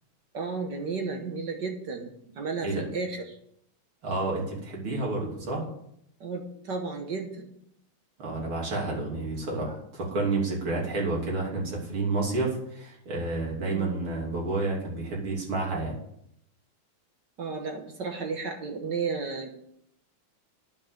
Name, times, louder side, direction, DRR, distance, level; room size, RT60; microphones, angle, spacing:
voice 1, 0.3-3.4 6.2-7.5 10.7-11.0 13.7-14.1 17.4-19.5, right 4 dB, 60° right, 4 dB, 1.8 m, -33 dB
voice 2, 4.0-5.6 8.2-16.0, right 3 dB, 80° right, -2 dB, 3.9 m, -30 dB
9.8 x 6.5 x 8.4 m, 0.73 s
omnidirectional pair, 2.3 m